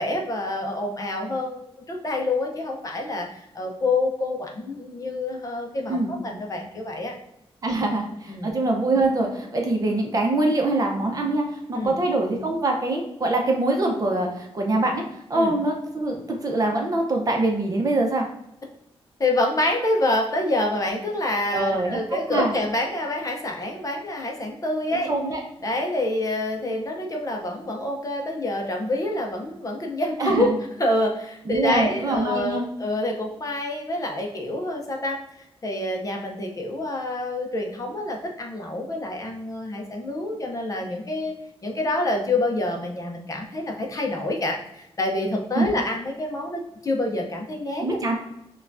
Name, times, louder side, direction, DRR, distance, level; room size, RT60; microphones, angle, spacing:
voice 1, 0.0-1.6 1.9-7.1 7.7-7.8 8.3-8.5 11.7-11.9 15.3-15.5 19.2-25.1 25.6-30.5 30.8-35.2 35.6-41.3 41.6-48.0, left 1 dB, 35° left, 1 dB, 0.6 m, -27 dB
voice 2, 7.6-15.0 15.3-18.3 21.5-22.0 22.3-22.6 24.9-25.4 30.2-30.6 31.5-32.6 45.6-45.7 47.8-48.2, right 2 dB, 35° right, 1 dB, 0.7 m, -24 dB
6.1 x 2.3 x 2.5 m, 0.82 s
wide cardioid pair, 175°, 10 cm